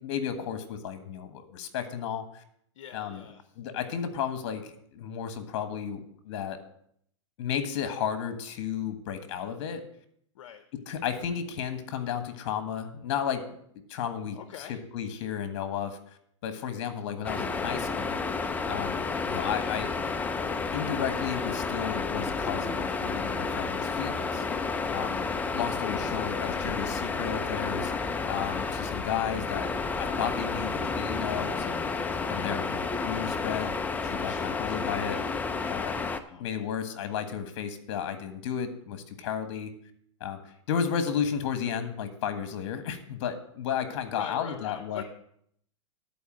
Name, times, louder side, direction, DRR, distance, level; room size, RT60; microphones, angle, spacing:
voice 1, 0.0-2.4 2.9-3.2 3.5-6.6 7.4-9.9 10.9-13.4 13.9-16.0 16.4-18.2 18.6-19.9 20.7-24.4 24.9-27.9 28.2-29.7 30.0-31.8 32.3-33.7 34.0-35.2 35.7-36.0 36.4-39.7 40.2-40.4 40.7-45.0, left 8 dB, 55° left, 9 dB, 1.5 m, -33 dB
voice 2, 2.8-3.4 10.3-10.6 14.3-14.8 26.4-26.7 32.1-32.7 34.2-34.8 35.7-35.9 36.3-36.7 44.1-45.0, left 9 dB, 70° left, 10 dB, 0.7 m, -44 dB
sound 1, 17.2-36.2, left 4 dB, 10° left, 0.5 m, -31 dB
11.0 x 4.6 x 7.4 m, 0.69 s
hypercardioid pair, 135°, 16 cm